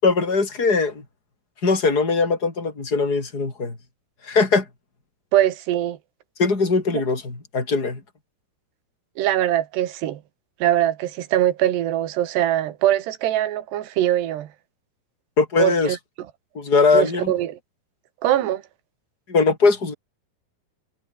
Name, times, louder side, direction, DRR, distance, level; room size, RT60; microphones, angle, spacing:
voice 1, 0.0-1.0 1.6-3.8 4.2-4.6 6.4-8.0 15.4-16.0 16.6-17.3 19.3-19.9, left 4 dB, 20° left, 5.8 m, -20 dB
voice 2, 5.3-6.0 9.2-10.2 10.6-14.5 15.6-16.0 16.9-17.6 18.2-18.6, right 12 dB, 80° right, 3.7 m, -22 dB
omnidirectional pair, 4.8 m